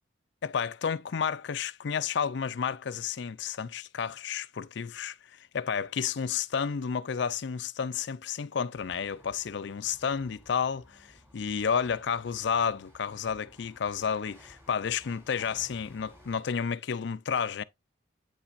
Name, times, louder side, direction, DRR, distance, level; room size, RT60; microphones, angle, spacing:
voice 1, 0.4-17.6, left 6 dB, 65° left, 0.4 m, -31 dB
sound 1, 8.7-16.4, equal, 15° right, 2.7 m, -56 dB
8.8 x 5.7 x 2.5 m
head